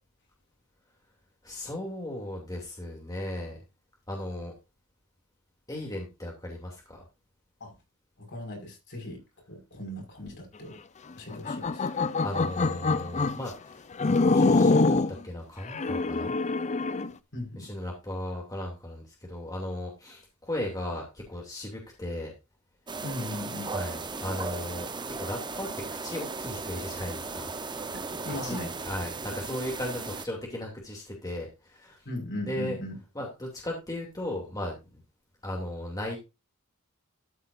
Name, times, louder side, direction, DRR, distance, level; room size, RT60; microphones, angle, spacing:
voice 1, 1.4-3.6 4.1-4.5 5.7-7.0 11.8-15.0 15.2-16.3 17.5-22.3 23.6-25.7 26.0-27.5 28.4-32.0 32.4-32.8 33.1-35.0 35.4-36.2, left 1 dB, 15° left, 2.7 m, -36 dB
voice 2, 8.2-9.2 9.5-10.8 11.1-11.9 17.3-17.7 23.0-23.7 27.9-28.8 32.1-33.0, left 1 dB, 55° left, 5.5 m, -38 dB
sound 1, 11.3-13.4 14.0-15.2 15.7-17.1, left 3 dB, 30° left, 0.5 m, -25 dB
sound 2, 22.9-30.3, right 4 dB, 20° right, 0.8 m, -36 dB
13.0 x 8.2 x 2.6 m
head